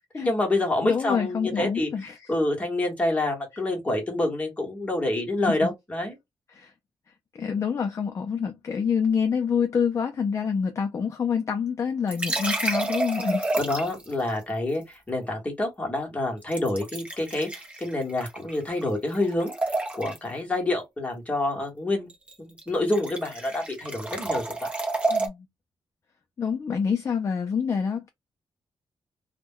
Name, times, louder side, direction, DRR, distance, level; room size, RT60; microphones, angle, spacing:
voice 1, 0.1-1.9 2.3-6.2 13.6-22.1 22.4-24.7, left 2 dB, 15° left, 1.0 m, -27 dB
voice 2, 0.8-2.2 5.5-5.6 6.5-6.7 7.3-13.5 25.1-25.5 26.4-28.1, left 6 dB, 35° left, 0.3 m, -27 dB
sound 1, 12.1-14.1 16.5-18.9 19.1-20.3 22.1-22.3 22.6-25.3, right 2 dB, 15° right, 0.6 m, -29 dB
2.2 x 2.1 x 3.4 m
wide cardioid pair, 160°, 9 cm